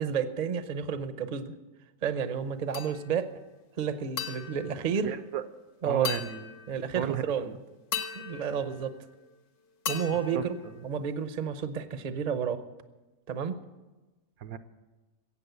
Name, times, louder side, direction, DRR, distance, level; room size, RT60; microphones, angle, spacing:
voice 1, 0.0-1.5 2.0-3.3 3.8-5.1 5.8-6.1 6.7-7.5 8.1-9.0 9.9-10.5 10.8-12.6 13.3-13.6, right 7 dB, 40° right, 10 dB, 0.7 m, -31 dB
sound 1, 2.7-3.3 4.2-5.6 6.0-7.1 7.9-9.4 9.9-11.3, left 6 dB, 55° left, 1.4 m, -39 dB
voice 2, 5.0-5.4 5.8-6.5 6.9-7.6 10.3-10.7 14.4-14.6, right 10 dB, 70° right, 12 dB, 1.1 m, -34 dB
15.5 x 8.7 x 8.1 m, 1.2 s
omnidirectional pair, 1.6 m